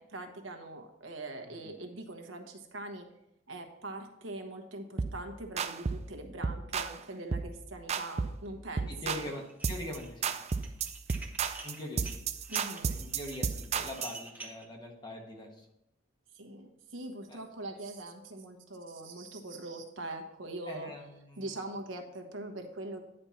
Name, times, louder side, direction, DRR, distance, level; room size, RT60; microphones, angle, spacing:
voice 1, 0.0-3.1 3.5-9.3 12.5-13.0 16.3-20.9 21.4-23.0, right 2 dB, 85° right, 5 dB, 1.2 m, -42 dB
sound 1, 5.0-5.2 5.6-6.1 6.4-7.0 7.3-7.5 7.9-8.4 8.8-9.3 9.6-10.0 10.2-14.2, right 5 dB, 35° right, 0.4 m, -33 dB
voice 2, 8.9-10.3 11.6-12.2 12.9-15.7 17.3-17.4 20.7-21.5, left 1 dB, 25° left, 1 dB, 1.3 m, -43 dB
Dishes pots and pans, 9.5-10.1 10.4-14.7, right 2 dB, 10° right, 0.8 m, -47 dB
9.9 x 4.4 x 5.6 m, 0.85 s
head